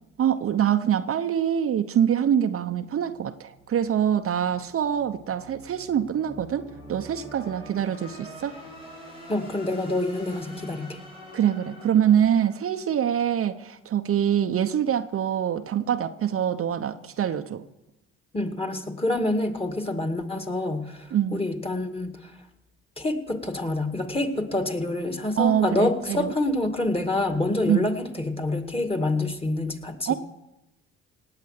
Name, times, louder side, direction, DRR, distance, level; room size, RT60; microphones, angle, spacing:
voice 1, 0.2-8.6 11.3-17.6 21.1-21.4 25.4-26.3 27.7-27.9 30.1-30.2, right 9 dB, 45° right, 7 dB, 0.8 m, -24 dB
sound 1, 2.8-13.7, equal, 90° left, 5.6 m, -46 dB
voice 2, 9.3-11.0 18.3-22.3 23.0-30.2, left 2 dB, 20° left, 6 dB, 2.2 m, -27 dB
18.5 x 8.4 x 6.6 m, 0.93 s
hypercardioid pair, 60°, 30 cm